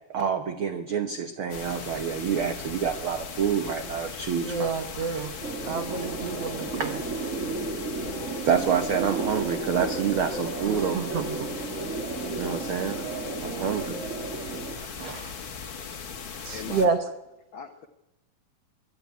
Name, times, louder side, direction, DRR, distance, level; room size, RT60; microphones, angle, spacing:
voice 1, 0.1-4.7 5.0-5.2 6.8-6.9 8.4-11.2 11.6-11.7 12.4-13.1 13.4-14.0 15.0-15.3, right 7 dB, 85° right, 8 dB, 1.1 m, -28 dB
sound 1, 1.5-16.9, left 6 dB, 40° left, 2.3 m, -39 dB
voice 2, 4.4-5.3 5.7-6.9 10.7-11.5 14.8-14.9 16.4-17.0, right 5 dB, 60° right, 9 dB, 1.8 m, -29 dB
sound 2, 5.4-14.8, right 3 dB, 30° right, 1.6 m, -33 dB
voice 3, 16.4-17.0 17.5-17.9, left 6 dB, 75° left, 7 dB, 1.1 m, -40 dB
23.5 x 12.0 x 9.5 m, 0.95 s
omnidirectional pair, 3.9 m